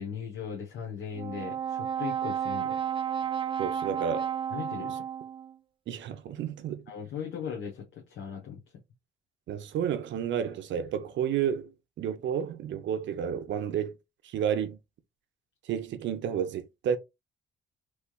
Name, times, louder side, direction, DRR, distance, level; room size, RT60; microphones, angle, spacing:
voice 1, 0.0-2.8 4.5-5.0 6.9-8.6, left 7 dB, 70° left, 1.0 m, -38 dB
Brass instrument, 1.1-5.5, right 9 dB, 25° right, 0.4 m, -32 dB
voice 2, 3.6-4.3 5.9-6.9 9.5-14.0 14.2-14.8 15.6-17.0, right 8 dB, 70° right, 0.6 m, -31 dB
3.2 x 3.1 x 2.3 m
cardioid pair, 90°, 20 cm